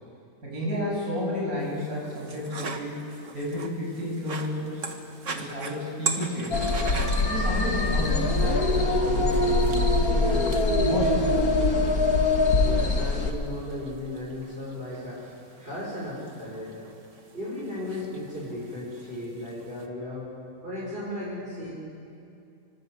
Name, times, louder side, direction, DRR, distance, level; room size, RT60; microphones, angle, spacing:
voice 1, 0.4-3.0 3.3-4.8 5.3-6.7 7.3-11.6, left 1 dB, 80° right, -4 dB, 8.6 m, -32 dB
sound 1, 1.6-19.9, right 4 dB, 55° right, 1.9 m, -41 dB
sound 2, 6.5-13.3, left 2 dB, 90° left, 2.5 m, -23 dB
voice 2, 12.6-16.9 17.3-20.3 20.6-21.7, left 1 dB, 40° right, -6 dB, 6.4 m, -35 dB
26.0 x 25.0 x 8.2 m, 2.5 s
omnidirectional pair, 1.5 m